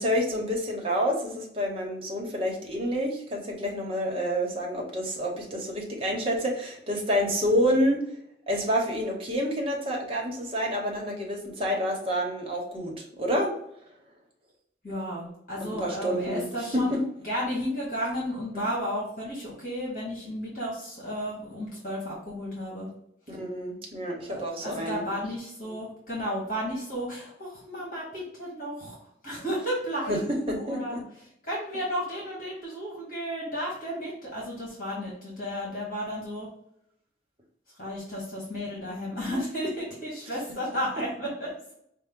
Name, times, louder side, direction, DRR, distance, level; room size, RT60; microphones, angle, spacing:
voice 1, 0.0-8.0 8.5-13.5 15.6-16.5 16.7-17.0 18.5-18.7 23.3-25.0 25.6-25.7 30.1-31.0, equal, 30° right, 0 dB, 1.0 m, -28 dB
voice 2, 14.8-17.0 17.2-22.9 24.2-29.0 29.2-31.0 31.4-36.5 37.8-41.5, equal, 50° left, -5 dB, 1.6 m, -33 dB
5.5 x 2.2 x 3.6 m, 0.75 s
head